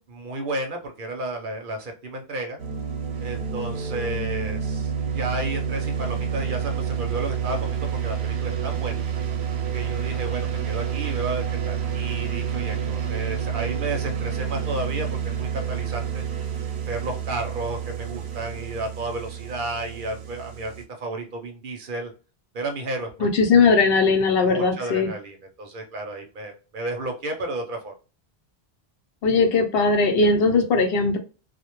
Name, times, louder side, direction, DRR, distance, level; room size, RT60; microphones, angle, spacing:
voice 1, 0.1-2.6 3.2-9.0 9.7-16.2 16.9-20.7 21.0-22.1 22.5-23.3 24.4-27.9, right 2 dB, 60° right, 4 dB, 0.7 m, -32 dB
sound 1, 2.6-20.8, right 7 dB, 90° right, 0.8 m, -29 dB
voice 2, 23.2-25.1 29.2-31.2, left 4 dB, 70° left, 4 dB, 0.8 m, -19 dB
2.1 x 2.1 x 2.9 m, 0.34 s
omnidirectional pair, 1.1 m